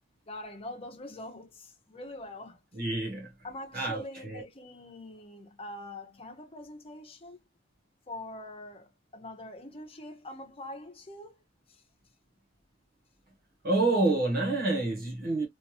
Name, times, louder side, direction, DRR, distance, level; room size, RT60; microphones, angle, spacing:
voice 1, 0.3-2.6 3.4-7.4 8.1-11.4 11.7-11.8, left 1 dB, 30° left, 1.0 m, -44 dB
voice 2, 2.8-3.3 3.7-4.4 13.6-15.5, right 2 dB, 50° right, 1.0 m, -28 dB
3.2 x 3.1 x 2.7 m
head